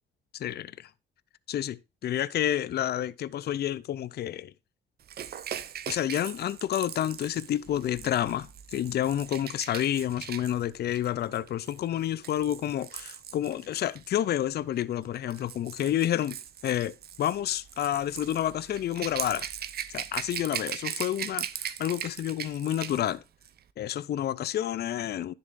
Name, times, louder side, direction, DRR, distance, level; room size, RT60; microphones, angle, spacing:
voice 1, 0.3-0.9 1.5-4.5 5.9-16.4 16.6-19.5 19.9-23.2 23.8-25.3, left 11 dB, 55° left, 0.5 m, -29 dB
Rattle / Rattle (instrument), 5.1-14.1 15.0-23.1 23.4-23.6, right 9 dB, 50° right, 0.7 m, -39 dB
10.5 x 6.9 x 2.5 m
cardioid pair, 90°, 20 cm